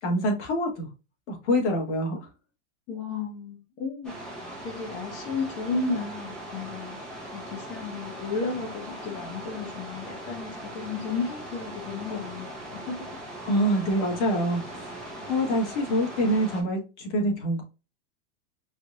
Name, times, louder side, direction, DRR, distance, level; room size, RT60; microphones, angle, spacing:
voice 1, 0.0-0.9 1.3-2.3 13.5-17.6, equal, 75° left, 1 dB, 2.1 m, -26 dB
voice 2, 2.9-4.1 4.6-7.0 7.3-13.1, left 4 dB, 30° left, 0 dB, 1.0 m, -33 dB
sound 1, 4.0-16.6, right 1 dB, ahead, 0.7 m, -40 dB
4.6 x 2.9 x 2.4 m, 0.30 s
supercardioid pair, 175°, 35 cm